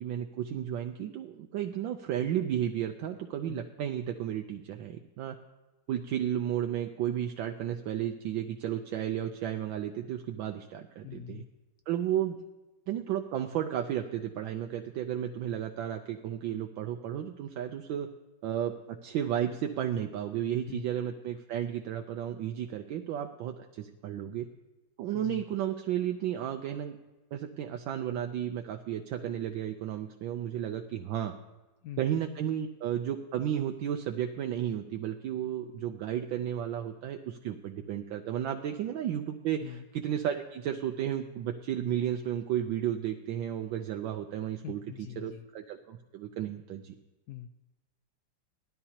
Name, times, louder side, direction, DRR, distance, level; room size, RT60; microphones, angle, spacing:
voice 1, 0.0-5.4 5.9-11.4 11.9-12.4 12.9-18.1 18.4-24.5 25.0-27.0 27.3-31.3 32.0-46.9, right 10 dB, 75° right, 4 dB, 1.3 m, -33 dB
voice 2, 11.0-11.5 20.7-20.9 25.1-25.4 31.8-32.0 39.6-39.8 44.6-45.4 47.3-47.6, left 11 dB, 75° left, 8 dB, 0.9 m, -43 dB
18.0 x 12.5 x 2.9 m, 1.1 s
omnidirectional pair, 2.2 m